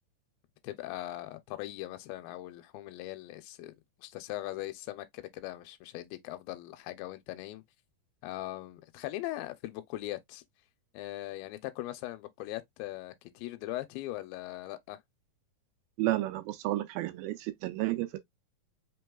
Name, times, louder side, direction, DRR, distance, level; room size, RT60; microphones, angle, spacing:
voice 1, 0.6-3.7 4.0-7.6 8.2-10.4 10.9-15.0, left 16 dB, 90° left, 2.4 m, -40 dB
voice 2, 16.0-18.2, right 17 dB, 90° right, 2.4 m, -31 dB
5.3 x 3.3 x 2.2 m
omnidirectional pair, 4.1 m